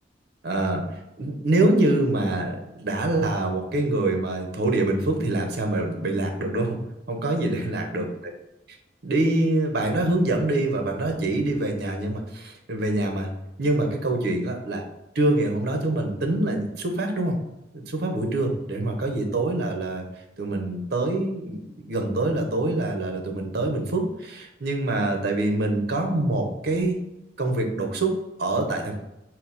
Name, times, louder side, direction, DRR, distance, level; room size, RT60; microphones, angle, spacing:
voice 1, 0.4-0.8 1.2-6.8 7.1-8.3 9.0-13.3 13.6-14.8 15.1-17.4 17.7-20.1 20.4-21.6 21.9-26.9 27.4-28.1 28.4-29.0, right 2 dB, 60° right, 3 dB, 0.7 m, -25 dB
4.5 x 2.0 x 3.8 m, 0.91 s
head